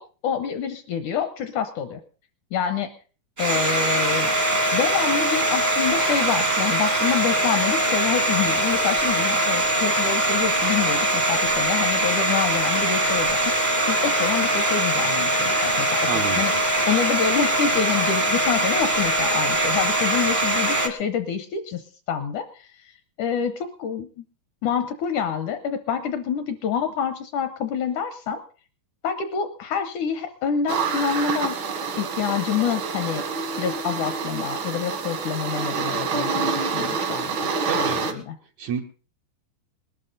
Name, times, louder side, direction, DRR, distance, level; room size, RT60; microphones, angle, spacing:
voice 1, 0.2-2.0 2.5-2.9 3.4-4.3 4.7-24.3 24.6-28.4 29.0-31.6 32.0-33.2 33.6-37.5 37.7-38.4, left 7 dB, 75° left, 9 dB, 1.9 m, -27 dB
Domestic sounds home sounds, 3.4-20.9, right 2 dB, 45° right, 0.6 m, -22 dB
voice 2, 16.1-16.4 37.6-38.0 38.6-38.8, right 8 dB, 80° right, 1 dB, 1.6 m, -29 dB
sound 1, 30.7-38.1, right 5 dB, 65° right, 1.2 m, -27 dB
20.0 x 12.0 x 3.9 m, 0.38 s
omnidirectional pair, 4.4 m